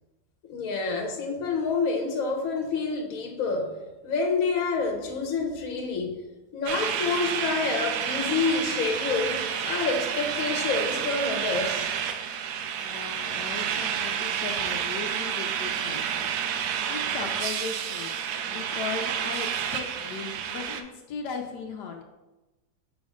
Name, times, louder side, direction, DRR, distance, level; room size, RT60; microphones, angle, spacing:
voice 1, 0.5-6.2 6.5-11.9, left 4 dB, 60° left, 3 dB, 1.3 m, -28 dB
sound 1, 6.7-20.8, right 8 dB, 75° right, 1.1 m, -30 dB
voice 2, 12.8-16.3 16.6-18.1 18.4-22.0, left 5 dB, 80° left, 3 dB, 1.2 m, -37 dB
5.2 x 4.0 x 4.9 m, 1.1 s
omnidirectional pair, 1.8 m